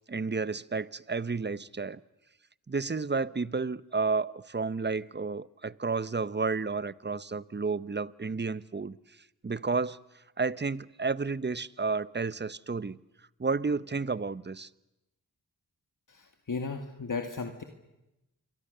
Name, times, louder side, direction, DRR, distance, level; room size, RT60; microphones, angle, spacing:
voice 1, 0.0-2.0 2.7-9.0 9.4-10.0 10.4-13.0 13.4-14.7, right 4 dB, 30° right, 0.8 m, -31 dB
voice 2, 16.1-17.6, left 4 dB, 55° left, 2.1 m, -35 dB
27.5 x 23.0 x 6.7 m
cardioid pair, 45°, 37 cm